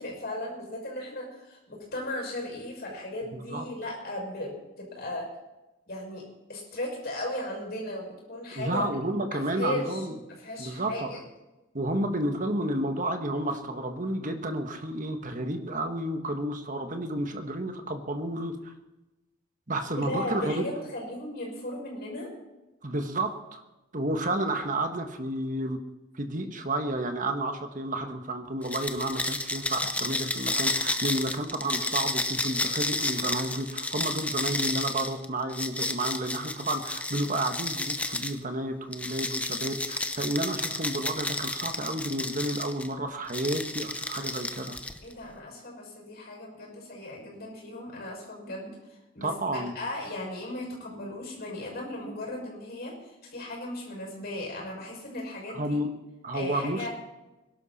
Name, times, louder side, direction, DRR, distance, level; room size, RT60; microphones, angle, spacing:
voice 1, 0.0-5.3 5.9-8.9 9.3-10.0 10.4-11.2 19.9-22.3 45.0-48.7 49.1-55.8 56.3-56.9, left 1 dB, 45° left, -1 dB, 6.4 m, -36 dB
voice 2, 3.3-3.6 8.5-10.2 10.6-11.1 11.7-18.7 19.7-20.7 22.8-23.6 23.9-25.8 26.2-44.8 49.2-49.7 55.5-55.9 56.2-56.9, right 1 dB, 40° right, 6 dB, 1.4 m, -31 dB
sound 1, 28.6-38.4 38.9-42.9 43.3-45.1, left 2 dB, 5° left, 0.7 m, -31 dB
21.5 x 11.5 x 4.3 m, 1.0 s
head